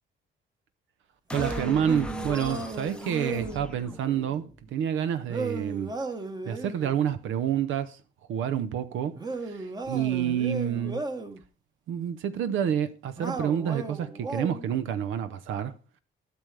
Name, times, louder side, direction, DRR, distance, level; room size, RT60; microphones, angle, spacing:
sound 1, 1.3-4.7, left 1 dB, 5° left, 0.6 m, -40 dB
sound 2, 1.3-3.7 5.3-6.9 9.1-11.4 13.2-14.7, right 3 dB, 20° right, 1.1 m, -35 dB
voice 1, 1.3-6.0 6.4-8.0 8.3-11.0 11.9-15.7, right 9 dB, 80° right, 0.7 m, -28 dB
12.5 x 6.9 x 3.3 m
cardioid pair, 90°, 20 cm